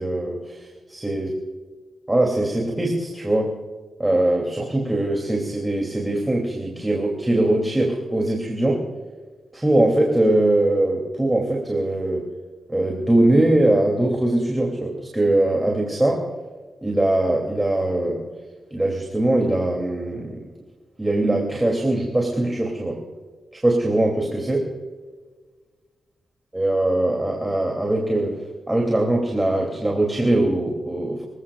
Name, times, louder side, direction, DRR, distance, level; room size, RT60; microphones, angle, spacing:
voice 1, 0.0-1.4 2.1-3.6 4.0-8.9 9.5-12.3 12.7-16.3 16.8-18.2 18.7-20.5 21.0-23.0 23.5-24.7 26.5-31.2, right 1 dB, 15° right, 0 dB, 2.8 m, -21 dB
26.0 x 16.5 x 2.5 m, 1.4 s
wide cardioid pair, 100°, 0 cm